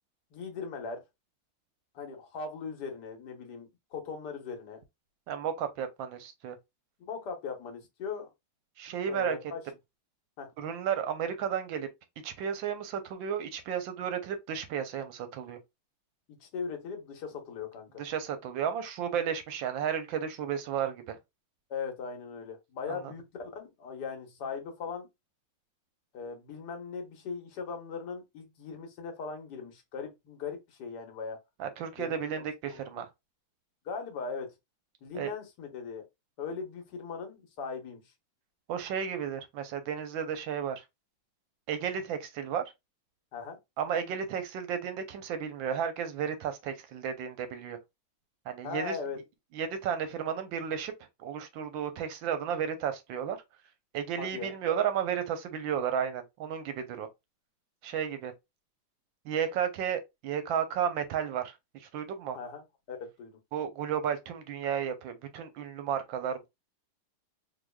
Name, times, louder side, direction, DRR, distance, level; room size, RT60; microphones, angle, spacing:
voice 1, 0.3-1.0 1.9-4.8 7.0-8.3 9.0-9.6 10.4-10.5 16.4-18.0 21.7-25.1 26.1-31.4 32.0-32.4 32.7-33.0 33.8-34.5 35.0-36.1 36.4-38.0 43.3-43.6 48.6-49.2 54.2-54.5 62.3-62.6 62.9-63.4, left 5 dB, 55° left, 1.4 m, -39 dB
voice 2, 5.3-6.6 8.8-9.4 10.6-11.9 12.2-15.6 18.0-21.2 22.9-23.1 31.6-33.1 35.1-35.3 38.7-40.8 41.7-42.6 43.8-47.8 48.5-49.0 49.5-50.9 51.2-53.4 53.9-57.1 57.8-58.3 59.2-62.4 63.5-66.5, right 8 dB, 70° right, 1.3 m, -33 dB
3.9 x 3.0 x 2.2 m
omnidirectional pair, 2.4 m